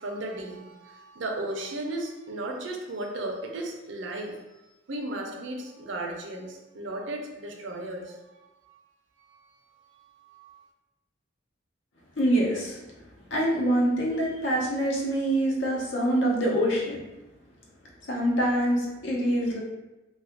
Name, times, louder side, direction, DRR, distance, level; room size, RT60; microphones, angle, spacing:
voice 1, 0.0-4.4 4.9-8.2 9.2-9.4 10.2-10.6, right 1 dB, 75° right, 1 dB, 0.5 m, -35 dB
voice 2, 12.2-12.8 13.3-17.0 18.1-19.6, right 1 dB, 80° left, -2 dB, 0.8 m, -25 dB
2.7 x 2.4 x 3.5 m, 1.0 s
head